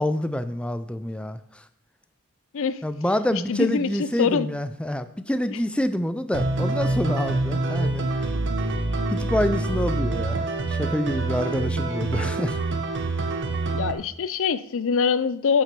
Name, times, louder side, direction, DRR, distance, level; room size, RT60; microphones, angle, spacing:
voice 1, 0.0-1.6 2.8-8.0 9.1-12.6 13.8-13.9, left 1 dB, 5° left, 0.4 m, -27 dB
voice 2, 3.3-4.5 5.5-5.6 13.7-15.6, left 6 dB, 65° left, 0.5 m, -24 dB
sound 1, 6.3-13.9, right 2 dB, 55° right, 1.0 m, -26 dB
8.2 x 6.2 x 5.9 m
head